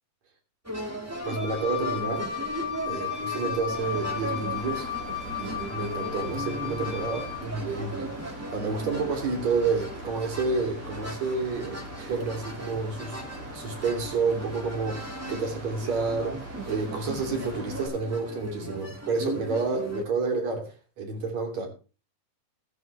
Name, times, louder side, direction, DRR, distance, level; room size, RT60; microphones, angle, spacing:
sound 1, 0.6-20.0, right 1 dB, 10° right, 0.8 m, -38 dB
Wind instrument woodwind instrument, 1.1-7.5, left 9 dB, 15° left, 4.8 m, -34 dB
voice 1, 1.2-2.3 2.9-4.9 5.4-8.1 8.5-13.2 13.5-21.7, right 4 dB, 60° right, 4.2 m, -30 dB
Mechanical fan, 3.7-17.9, equal, 40° right, 7.2 m, -41 dB
14.5 x 13.5 x 3.2 m
omnidirectional pair, 3.6 m